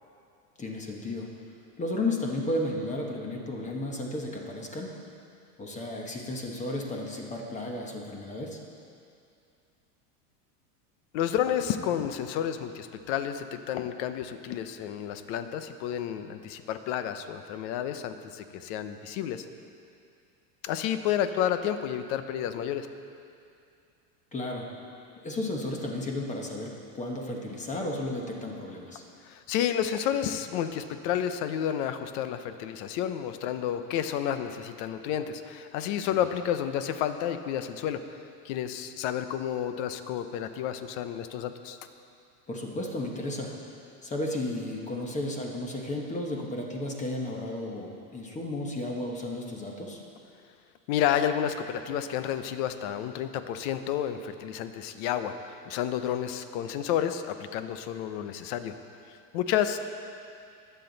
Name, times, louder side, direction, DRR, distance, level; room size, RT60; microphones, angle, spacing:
voice 1, 0.6-1.3 1.8-4.9 5.6-8.6 24.3-24.7 25.2-29.0 36.1-36.2 42.5-43.6 44.0-50.0, left 1 dB, 15° left, 0 dB, 1.1 m, -33 dB
voice 2, 11.1-19.4 20.6-22.9 29.3-38.0 38.4-41.8 50.9-58.7 59.3-59.8, left 10 dB, 45° left, 10 dB, 0.8 m, -30 dB
20.5 x 8.0 x 4.0 m, 2.5 s
supercardioid pair, 150°, 47 cm